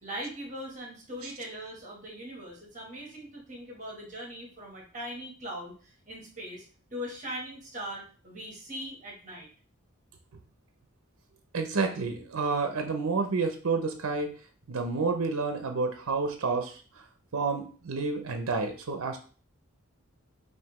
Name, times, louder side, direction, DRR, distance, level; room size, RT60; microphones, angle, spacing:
voice 1, 0.0-6.6 6.9-9.5, equal, 35° right, -2 dB, 1.2 m, -40 dB
voice 2, 11.5-14.3 14.7-16.8 17.3-19.2, right 4 dB, 70° right, 6 dB, 0.5 m, -29 dB
5.5 x 2.6 x 3.0 m, 0.40 s
head